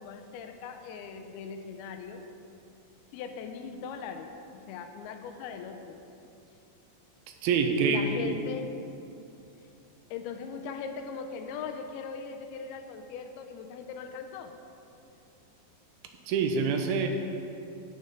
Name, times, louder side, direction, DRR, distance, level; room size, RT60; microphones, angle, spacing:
voice 1, 0.0-2.2 3.1-4.3 4.7-6.0 7.8-8.7 10.1-14.5, left 6 dB, 90° left, 6 dB, 2.5 m, -39 dB
voice 2, 7.4-8.0 8.2-8.3 16.3-17.1, right 6 dB, 85° right, 5 dB, 2.5 m, -26 dB
9.5 x 9.4 x 3.7 m, 2.7 s
omnidirectional pair, 4.4 m